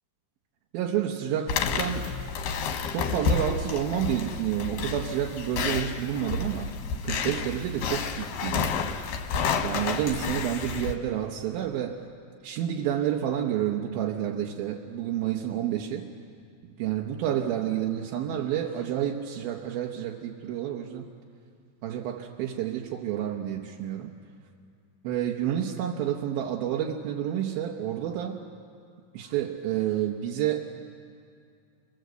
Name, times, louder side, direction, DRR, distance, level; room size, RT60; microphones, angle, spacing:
voice 1, 0.7-2.1 2.9-6.7 7.0-9.0 9.6-12.0 12.4-16.1 16.8-21.0 21.8-24.1 25.0-28.4 29.1-30.7, right 10 dB, 70° right, 0 dB, 2.6 m, -29 dB
sound 1, 1.5-10.9, left 5 dB, 65° left, 2.6 m, -30 dB
29.0 x 20.5 x 8.0 m, 2.3 s
omnidirectional pair, 5.0 m